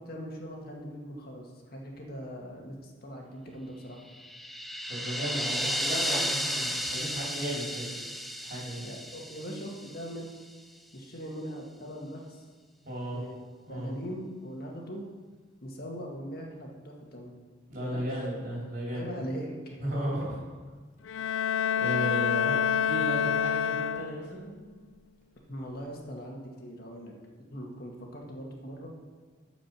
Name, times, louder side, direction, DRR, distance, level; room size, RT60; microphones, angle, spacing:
voice 1, 0.1-4.0 8.8-10.4 10.9-12.4 13.1-13.4 13.7-15.0 15.6-17.3 17.8-18.0 18.9-20.0 25.5-27.1 27.5-28.9, equal, 50° left, 0 dB, 1.8 m, -40 dB
sound 1, 4.1-10.3, equal, ahead, 0.3 m, -33 dB
voice 2, 4.9-7.9 8.4-8.8 12.8-13.2 13.7-14.0 17.7-19.1 19.8-20.4 21.1-24.5, right 1 dB, 45° right, -5 dB, 3.4 m, -35 dB
Bowed string instrument, 21.1-24.5, left 8 dB, 80° left, 0.3 m, -27 dB
13.0 x 5.0 x 6.0 m, 1.4 s
head